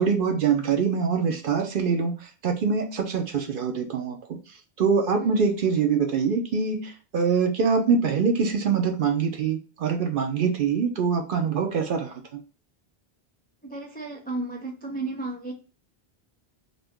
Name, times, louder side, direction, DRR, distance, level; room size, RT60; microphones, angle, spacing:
voice 1, 0.0-12.4, right 5 dB, 60° right, 4 dB, 0.7 m, -24 dB
voice 2, 13.6-15.5, right 2 dB, 15° left, 0 dB, 0.3 m, -33 dB
2.6 x 2.5 x 3.5 m, 0.34 s
omnidirectional pair, 1.1 m